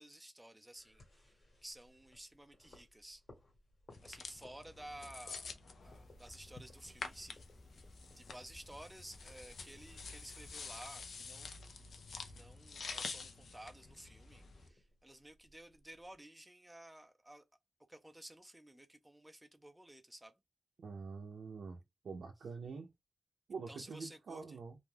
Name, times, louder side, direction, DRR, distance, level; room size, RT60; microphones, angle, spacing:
voice 1, 0.0-3.2 4.0-5.6 5.8-7.4 8.2-11.5 12.3-17.4 17.9-20.4 23.7-24.6, right 1 dB, 10° right, 0.4 m, -54 dB
sound 1, 0.7-16.2, left 2 dB, 65° left, 1.3 m, -66 dB
sound 2, 3.9-14.7, left 4 dB, 80° left, 0.5 m, -49 dB
sound 3, 5.8-11.0, left 1 dB, 25° left, 0.7 m, -61 dB
voice 2, 20.8-21.8 22.0-22.9 23.5-24.8, right 5 dB, 90° right, 0.5 m, -45 dB
2.5 x 2.2 x 3.2 m
cardioid pair, 60°, 0 cm